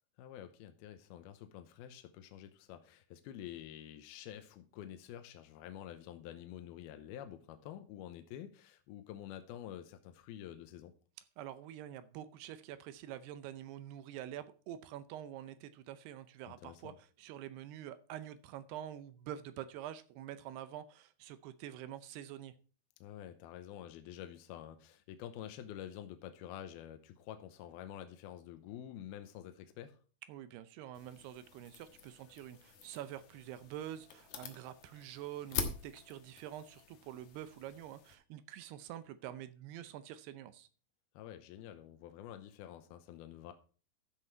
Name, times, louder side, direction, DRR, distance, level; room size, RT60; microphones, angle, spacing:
voice 1, 0.2-10.9 16.5-17.0 23.0-30.0 41.1-43.5, left 11 dB, 80° left, 8 dB, 2.5 m, -48 dB
voice 2, 11.4-22.5 30.3-40.7, right 11 dB, 80° right, 12 dB, 2.6 m, -47 dB
sound 1, 30.9-38.2, left 7 dB, 60° left, 2.2 m, -46 dB
13.0 x 6.8 x 4.5 m, 0.39 s
omnidirectional pair, 4.9 m